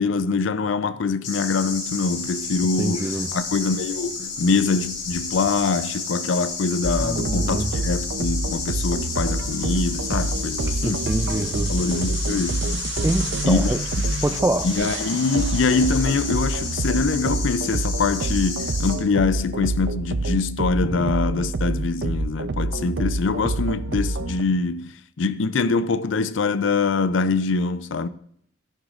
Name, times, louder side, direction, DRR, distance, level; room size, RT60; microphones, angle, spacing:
voice 1, 0.0-11.2 11.7-12.7 13.5-13.7 14.3-28.1, left 4 dB, 70° left, 0.5 m, -24 dB
sound 1, 1.2-18.9, left 4 dB, 90° left, 4.5 m, -31 dB
voice 2, 2.8-3.3 7.0-7.7 10.8-11.7 13.0-13.8 14.2-14.7, right 1 dB, 15° right, 0.4 m, -25 dB
sound 2, 6.8-24.4, right 2 dB, 65° right, 0.6 m, -27 dB
13.0 x 11.5 x 2.5 m
head